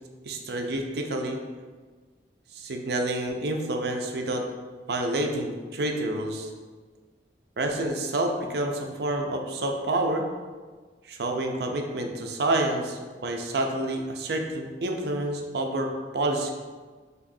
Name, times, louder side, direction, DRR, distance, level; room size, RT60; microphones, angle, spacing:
voice 1, 0.3-1.4 2.5-4.4 4.9-6.5 7.6-10.3 11.1-16.5, right 1 dB, 60° right, 3 dB, 0.5 m, -28 dB
5.9 x 3.0 x 2.6 m, 1.4 s
head